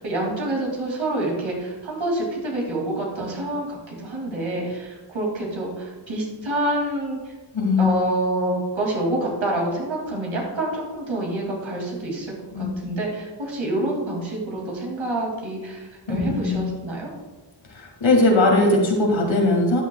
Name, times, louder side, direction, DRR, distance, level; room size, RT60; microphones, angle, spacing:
voice 1, 0.0-7.2 7.8-17.1, right 1 dB, 90° right, -1 dB, 2.7 m, -27 dB
voice 2, 7.5-7.9 12.5-12.9 16.1-16.7 17.7-19.8, left 2 dB, 85° left, 0 dB, 2.2 m, -20 dB
12.5 x 8.7 x 2.3 m, 1.2 s
wide cardioid pair, 90°, 45 cm